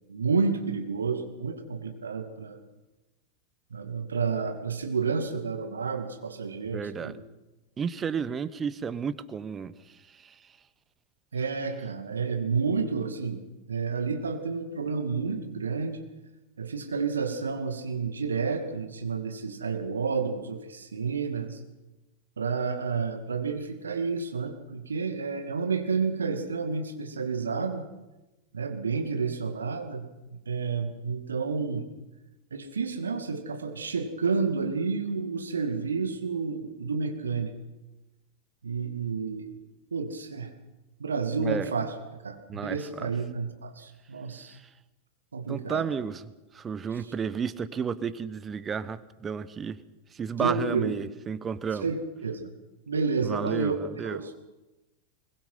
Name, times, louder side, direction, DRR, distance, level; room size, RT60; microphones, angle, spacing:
voice 1, 0.1-2.6 3.7-7.1 11.3-16.0 16.6-21.6 22.4-27.8 28.5-31.9 32.5-37.6 38.6-39.5 39.9-40.5 41.0-41.9 42.2-44.6 45.3-45.9 50.4-50.9 51.8-52.5 52.9-53.8 54.0-54.4, right 5 dB, 70° right, 6 dB, 2.4 m, -30 dB
voice 2, 6.7-7.2 7.8-10.3 41.4-41.7 42.5-43.1 44.5-44.7 45.5-49.8 50.1-51.9 53.2-54.4, right 6 dB, 20° right, 15 dB, 1.0 m, -32 dB
22.5 x 21.0 x 5.7 m, 1.0 s
figure-of-eight pair, 90°, 0 cm